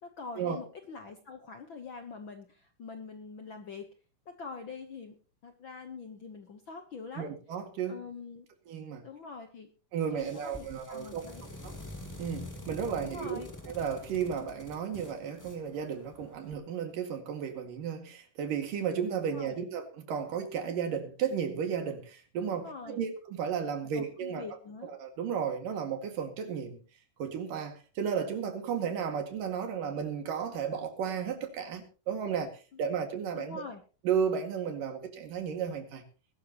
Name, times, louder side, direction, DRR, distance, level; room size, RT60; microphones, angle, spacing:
voice 1, 0.0-3.9 4.3-5.2 5.4-7.3 7.9-8.5 9.0-9.7 10.1-11.4 13.0-13.5 19.3-19.7 22.5-23.1 23.9-24.9 33.3-33.8, left 4 dB, 65° left, 6 dB, 1.2 m, -44 dB
voice 2, 7.2-8.0 8.7-9.0 9.9-11.3 11.6-11.7 12.2-24.4 25.0-26.8 27.2-32.5 32.8-33.6 34.0-36.0, right 7 dB, 90° right, 5 dB, 3.8 m, -33 dB
sound 1, 10.1-16.5, left 1 dB, 10° left, 1.4 m, -46 dB
20.5 x 12.5 x 3.0 m, 0.36 s
omnidirectional pair, 3.7 m